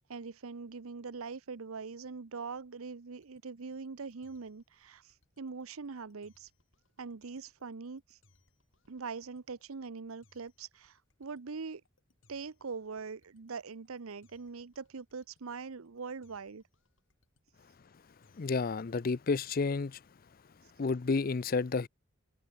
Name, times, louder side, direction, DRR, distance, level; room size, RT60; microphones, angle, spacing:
voice 1, 0.1-6.5 7.0-8.2 8.9-11.8 12.3-16.6, right 5 dB, 85° right, 0.7 m, -42 dB
sound 1, 3.1-18.7, left 2 dB, 60° left, 6.1 m, -71 dB
voice 2, 18.4-20.0 20.8-21.9, left 4 dB, 45° left, 0.5 m, -30 dB
head